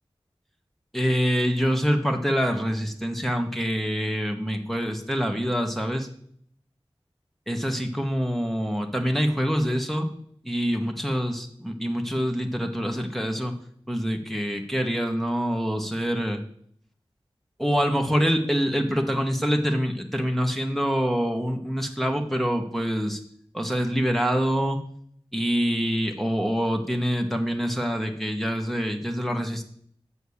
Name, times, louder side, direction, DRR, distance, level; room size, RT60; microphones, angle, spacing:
voice 1, 0.9-6.1 7.5-10.1 10.4-13.5 13.9-16.4 17.6-23.2 23.5-24.8 25.3-29.6, equal, ahead, 3 dB, 1.6 m, -25 dB
7.9 x 7.2 x 6.6 m, 0.65 s
wide cardioid pair, 40°, 10 cm